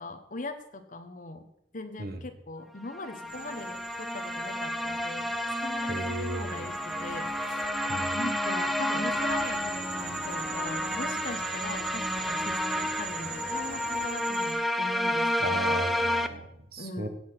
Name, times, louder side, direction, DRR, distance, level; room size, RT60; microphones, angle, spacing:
voice 1, 0.0-1.5 1.7-7.6 8.1-15.7 16.8-17.1, left 2 dB, 45° left, 6 dB, 1.1 m, -40 dB
sound 1, 2.9-16.3, left 1 dB, ahead, 0.6 m, -31 dB
sound 2, 3.3-14.5, right 5 dB, 75° right, 6.0 m, -42 dB
voice 2, 5.9-6.7 7.9-8.2 15.4-17.1, right 1 dB, 55° right, 7 dB, 1.6 m, -35 dB
sound 3, 9.0-14.1, left 1 dB, 65° left, 3.0 m, -47 dB
17.0 x 6.1 x 6.0 m, 0.78 s
head